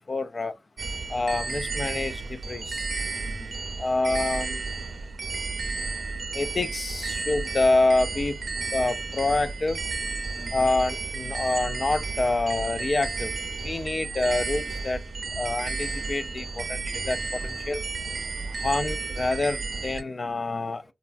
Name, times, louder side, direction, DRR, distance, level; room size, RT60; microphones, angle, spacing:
voice 1, 0.1-0.5 1.1-2.9 3.8-4.6 6.3-8.4 8.7-9.8 10.5-13.3 13.6-15.0 15.3-17.8 18.6-20.9, left 2 dB, 50° left, 0.3 m, -27 dB
sound 1, 0.8-20.0, right 4 dB, 70° right, 0.5 m, -32 dB
voice 2, 3.2-3.6 8.5-8.8 10.3-10.7 13.5-14.4 16.1-16.2 17.4-18.7 20.7-20.9, equal, 5° left, 0.6 m, -49 dB
3.2 x 2.3 x 2.3 m
wide cardioid pair, 80°, 0 cm